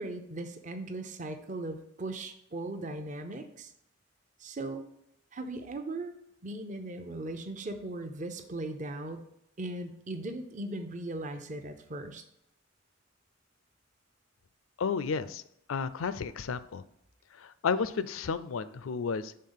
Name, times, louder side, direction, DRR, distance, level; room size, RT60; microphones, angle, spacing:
voice 1, 0.0-3.7 4.4-4.8 5.3-6.1 6.4-9.2 9.6-12.2, right 2 dB, 40° right, 6 dB, 0.6 m, -38 dB
voice 2, 14.8-15.4 15.7-16.8 17.4-19.4, left 5 dB, 85° left, 14 dB, 0.4 m, -32 dB
6.6 x 3.6 x 5.6 m, 0.76 s
head